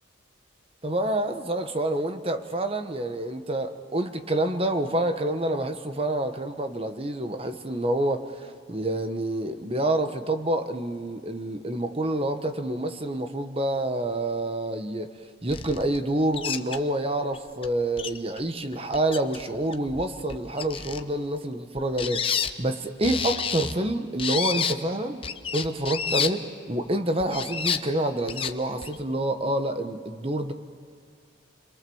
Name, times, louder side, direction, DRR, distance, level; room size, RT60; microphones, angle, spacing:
voice 1, 0.8-15.1 15.4-25.2 25.5-30.5, right 1 dB, 30° right, 7 dB, 1.2 m, -27 dB
sound 1, 15.5-16.0 16.3-16.8 17.3-17.4 17.6-17.7 18.0-18.4 18.7-19.4 19.7-21.0 21.8-22.5 23.0-23.8 24.2-24.7 25.2-26.3 27.2-27.8 28.3-28.5 28.8-29.0, left 7 dB, 25° left, 0.9 m, -29 dB
29.5 x 22.5 x 7.1 m, 2.3 s
head